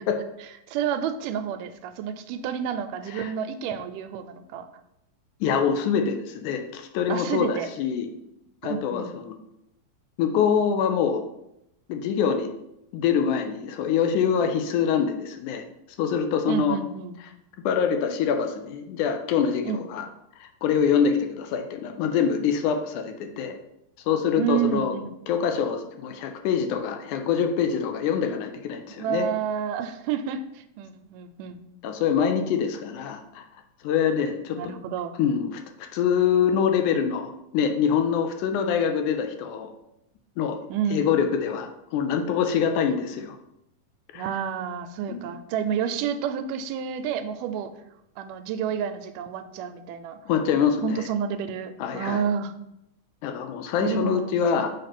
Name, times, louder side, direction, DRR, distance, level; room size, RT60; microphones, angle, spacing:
voice 1, 0.7-4.7 7.1-7.7 8.6-9.1 16.5-17.2 19.6-19.8 24.4-25.1 29.0-31.6 34.5-35.1 40.7-41.2 44.1-47.7 48.2-50.2 50.8-52.5 53.8-54.4, right 8 dB, 85° right, 9 dB, 2.1 m, -29 dB
voice 2, 5.4-8.1 8.6-9.3 10.2-11.2 11.9-12.5 12.9-15.6 16.0-16.8 17.7-20.1 20.4-23.6 24.1-24.9 25.3-29.3 31.8-33.5 33.8-34.7 35.2-39.7 40.4-40.6 40.9-43.4 44.1-44.3 45.1-45.2 50.3-51.1 51.8-52.2 53.2-54.7, left 7 dB, 80° left, 6 dB, 2.0 m, -25 dB
6.5 x 3.2 x 5.9 m, 0.82 s
omnidirectional pair, 3.7 m